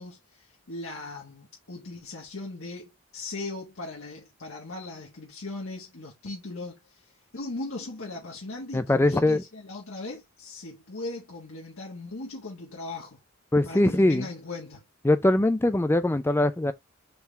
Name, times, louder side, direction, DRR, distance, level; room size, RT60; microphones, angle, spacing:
voice 1, 0.0-6.9 7.3-13.2 13.6-14.8, left 2 dB, 80° left, 1.4 m, -38 dB
voice 2, 8.7-9.4 13.5-14.2 15.0-16.7, left 1 dB, 10° left, 0.3 m, -22 dB
4.6 x 3.5 x 3.2 m
head